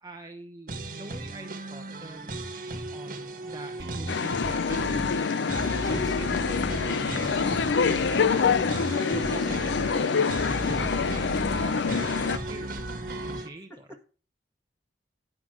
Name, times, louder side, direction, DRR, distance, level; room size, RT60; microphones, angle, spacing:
voice 1, 0.0-2.4 2.9-5.3 5.8-10.0 10.4-13.9, right 2 dB, 20° right, 3 dB, 0.9 m, -45 dB
sound 1, 0.7-13.5, right 2 dB, 45° right, 1.5 m, -37 dB
sound 2, 3.8-13.4, right 1 dB, 60° right, 1.6 m, -37 dB
sound 3, 4.1-12.4, left 5 dB, 70° left, 0.4 m, -26 dB
voice 2, 9.2-9.8 10.7-10.9 13.7-14.0, right 1 dB, 15° left, 4 dB, 1.8 m, -45 dB
10.5 x 5.9 x 6.1 m, 0.38 s
head